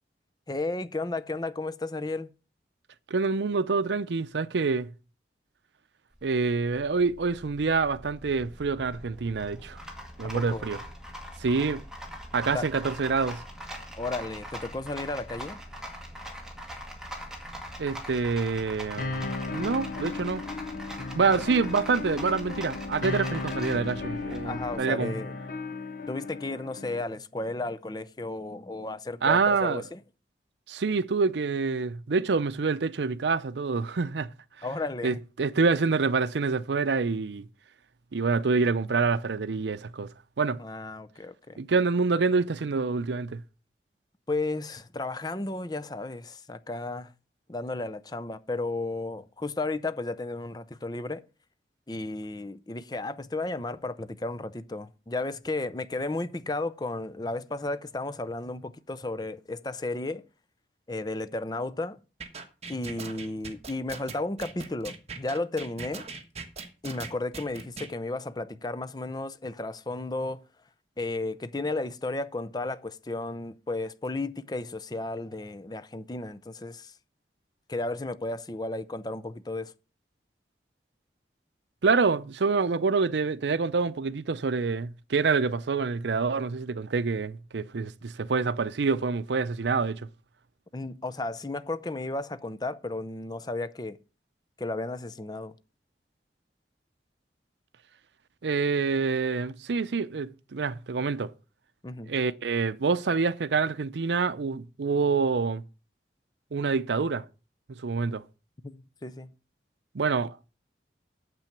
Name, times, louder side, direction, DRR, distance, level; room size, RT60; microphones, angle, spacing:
voice 1, 0.5-2.3 10.2-10.7 12.5-12.7 14.0-15.6 24.4-25.4 26.1-30.0 34.6-35.2 40.6-41.6 44.3-47.1 47.5-51.2 51.9-60.2 60.9-62.0 62.7-66.1 66.8-70.4 71.0-76.9 77.7-79.7 90.7-94.0 94.6-95.5 101.8-102.1 108.6-109.3, left 2 dB, 25° left, 0.6 m, -33 dB
voice 2, 3.1-4.9 6.2-9.8 10.2-10.8 11.4-11.8 12.3-13.4 17.8-20.4 21.1-25.1 29.2-29.8 30.7-34.3 35.0-37.5 38.1-40.1 40.4-40.6 41.6-43.4 81.8-90.1 98.4-101.3 102.1-105.6 106.5-107.2 107.7-108.2 109.9-110.5, right 4 dB, 85° right, 0.6 m, -26 dB
Rattle, 6.1-24.7, equal, 5° right, 2.0 m, -42 dB
sound 1, 19.0-27.0, left 3 dB, 50° left, 0.8 m, -35 dB
sound 2, 62.2-67.9, right 4 dB, 35° right, 1.3 m, -40 dB
9.0 x 7.7 x 5.8 m
head